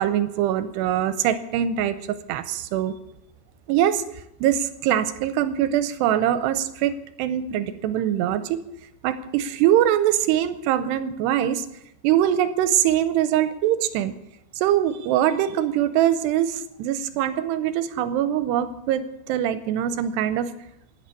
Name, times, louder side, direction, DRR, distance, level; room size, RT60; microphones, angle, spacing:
voice 1, 0.0-2.0 2.3-2.9 3.7-4.0 4.4-8.6 9.0-11.7 12.0-14.1 14.6-20.5, right 11 dB, 80° right, 12 dB, 2.6 m, -23 dB
12.0 x 11.0 x 8.3 m, 0.82 s
omnidirectional pair, 5.2 m